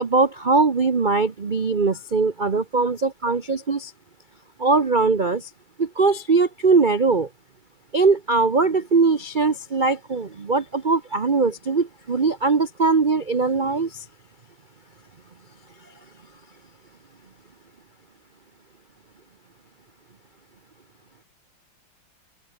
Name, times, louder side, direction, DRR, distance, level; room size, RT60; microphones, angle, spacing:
voice 1, 0.0-3.9 4.6-5.5 5.8-7.3 7.9-14.0, right 4 dB, 40° right, 0.7 m, -21 dB
open air
omnidirectional pair, 2.4 m